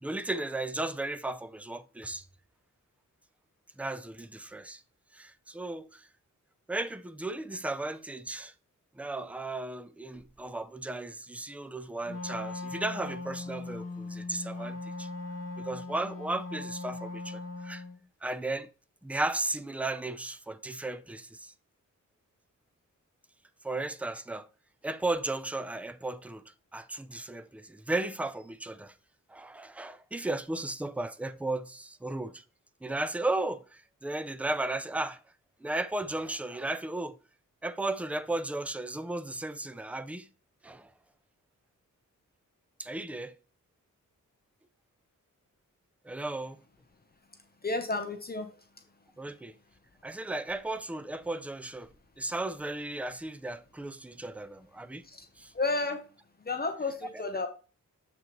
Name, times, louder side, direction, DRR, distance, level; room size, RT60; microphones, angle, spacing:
voice 1, 0.0-2.3 3.8-4.8 5.1-6.1 6.7-8.5 8.9-15.1 15.6-17.8 18.2-18.7 19.0-21.5 23.6-24.5 24.8-28.9 29.3-32.4 32.8-35.2 35.6-37.2 37.6-40.3 40.6-40.9 42.8-43.3 46.0-46.6 49.2-49.6 50.0-55.0 55.4-55.5, right 2 dB, 5° right, 0.4 m, -35 dB
Wind instrument woodwind instrument, 12.0-18.0, left 3 dB, 50° left, 1.6 m, -39 dB
voice 2, 47.6-48.5 55.1-55.3 55.5-56.0 56.5-57.5, left 3 dB, 30° left, 0.8 m, -31 dB
7.2 x 6.4 x 3.0 m
wide cardioid pair, 165°, 32 cm